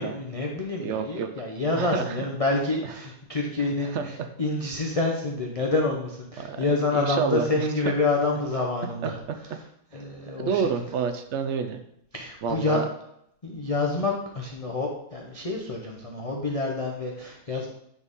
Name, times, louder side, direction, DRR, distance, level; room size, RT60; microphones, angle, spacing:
voice 1, 0.0-9.2 9.4-9.6 9.9-10.6 12.1-12.8 13.4-17.7, left 3 dB, 40° left, -1 dB, 0.5 m, -28 dB
voice 2, 0.8-1.3 1.8-2.1 3.6-4.0 6.4-6.6 6.9-7.9 9.0-9.4 10.3-11.8 12.4-12.9, right 6 dB, 80° right, 7 dB, 0.6 m, -29 dB
9.6 x 4.1 x 3.6 m, 0.75 s
omnidirectional pair, 1.9 m